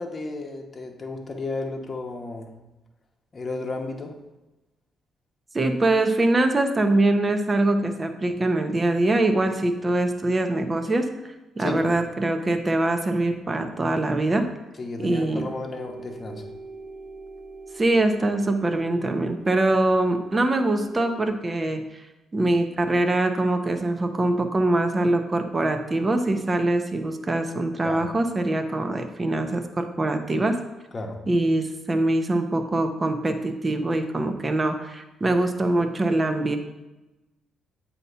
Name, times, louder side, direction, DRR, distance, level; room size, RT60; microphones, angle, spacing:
voice 1, 0.0-2.5 3.3-4.2 11.6-11.9 14.8-16.4 27.8-28.0 30.9-31.2, left 2 dB, 35° left, 1 dB, 1.0 m, -33 dB
voice 2, 5.5-11.1 11.6-14.5 15.0-15.5 17.8-21.8 22.3-30.6 31.3-36.6, right 2 dB, 25° right, 6 dB, 0.7 m, -23 dB
sound 1, 15.2-21.3, right 3 dB, 65° right, 1.0 m, -43 dB
7.8 x 2.9 x 5.5 m, 1.0 s
cardioid pair, 90°, 0 cm